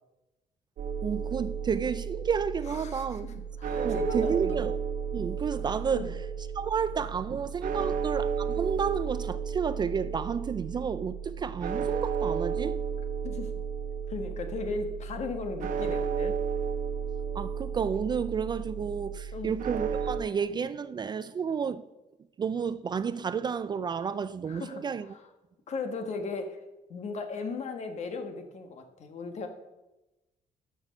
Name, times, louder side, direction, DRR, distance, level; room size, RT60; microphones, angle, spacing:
sound 1, 0.8-20.2, right 7 dB, 65° right, 1.0 m, -33 dB
voice 1, 1.0-3.4 3.8-4.7 5.1-6.1 6.5-12.8 17.3-21.8 22.4-25.1, right 6 dB, 30° right, 0.3 m, -31 dB
voice 2, 2.8-3.3 3.6-4.6 5.9-6.1 13.2-13.5 14.1-16.4 19.3-19.6 24.5-25.2 25.7-26.6 26.9-29.5, left 3 dB, 50° left, 1.4 m, -36 dB
12.5 x 6.1 x 5.7 m
cardioid pair, 150°, 14 cm